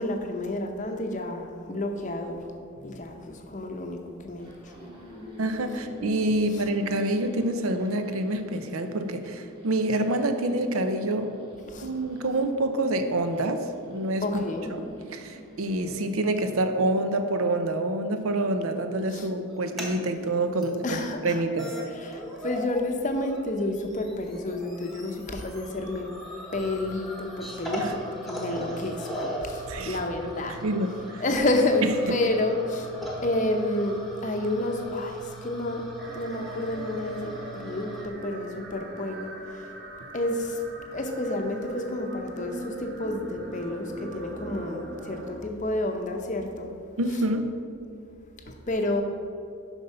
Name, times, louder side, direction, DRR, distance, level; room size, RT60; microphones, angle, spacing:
voice 1, 0.0-2.4 2.8-4.5 11.7-11.9 14.2-14.7 19.1-19.3 20.8-21.4 21.9-26.1 26.5-30.6 31.2-32.9 33.2-35.9 36.1-39.7 40.1-40.6 40.9-46.7 48.5-49.0, left 1 dB, 35° left, 4 dB, 0.7 m, -30 dB
sound 1, 4.4-16.6, equal, 25° right, 1.3 m, -47 dB
voice 2, 5.4-11.3 11.8-14.2 14.8-14.9 15.1-21.7 27.8-27.9 29.7-31.2 32.1-32.2 47.0-47.5, right 1 dB, 75° right, 7 dB, 0.6 m, -27 dB
sound 2, 19.5-19.9 20.6-20.7 21.3-21.4 21.6-22.8 23.1-38.0, right 1 dB, ahead, 1.0 m, -39 dB
sound 3, 36.0-45.4, right 1 dB, 45° right, 1.0 m, -40 dB
7.2 x 5.4 x 5.5 m, 2.6 s
head